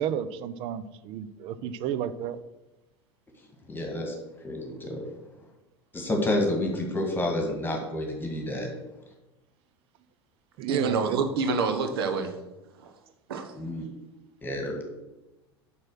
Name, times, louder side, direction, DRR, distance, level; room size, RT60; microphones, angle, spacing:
voice 1, 0.0-2.4 10.6-11.3, right 9 dB, 45° right, 15 dB, 0.6 m, -31 dB
voice 2, 3.7-4.2 4.4-5.1 5.9-8.7 13.6-13.9 14.4-14.8, left 1 dB, 15° left, 2 dB, 1.8 m, -29 dB
voice 3, 10.7-12.3 12.8-12.9 13.3-13.5, right 4 dB, 65° right, 7 dB, 1.1 m, -27 dB
7.5 x 6.0 x 6.3 m, 1.0 s
figure-of-eight pair, 80°, 14 cm